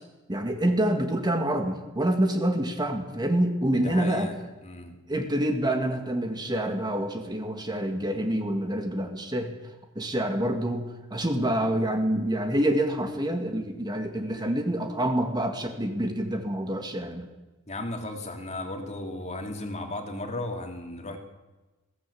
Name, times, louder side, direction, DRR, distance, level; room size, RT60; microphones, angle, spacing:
voice 1, 0.3-4.3 5.1-9.6 10.0-17.3, right 1 dB, 20° right, 5 dB, 2.1 m, -27 dB
voice 2, 3.8-4.4 4.6-4.9 17.7-21.2, left 2 dB, 30° left, 3 dB, 2.8 m, -35 dB
21.0 x 16.0 x 8.6 m, 1.1 s
head